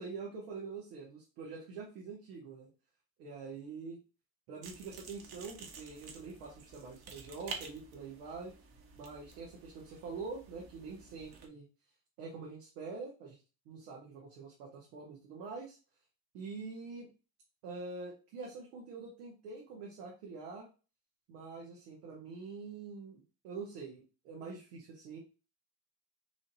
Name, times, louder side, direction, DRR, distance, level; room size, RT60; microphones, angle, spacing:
voice 1, 0.0-2.7 3.2-4.0 4.5-8.5 9.0-11.6 12.2-13.4 13.7-15.8 16.3-17.1 17.6-20.7 21.3-25.2, right 4 dB, 85° right, -2 dB, 1.2 m, -45 dB
sound 1, 4.6-11.5, right 5 dB, 50° right, 1.2 m, -50 dB
4.9 x 2.6 x 2.6 m, 0.33 s
hypercardioid pair, 65°, 46 cm